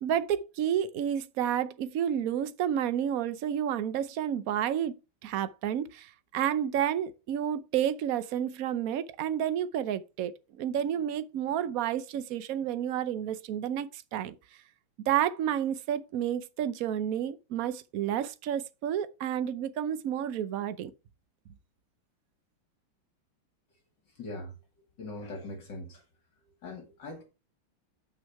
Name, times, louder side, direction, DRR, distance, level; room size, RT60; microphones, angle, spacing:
voice 1, 0.0-4.9 5.2-14.3 15.1-20.9, right 10 dB, 70° right, 0.8 m, -30 dB
voice 2, 24.1-24.5 25.0-26.0 26.5-27.2, left 2 dB, 60° left, 2.2 m, -41 dB
8.3 x 6.2 x 4.6 m
omnidirectional pair, 2.3 m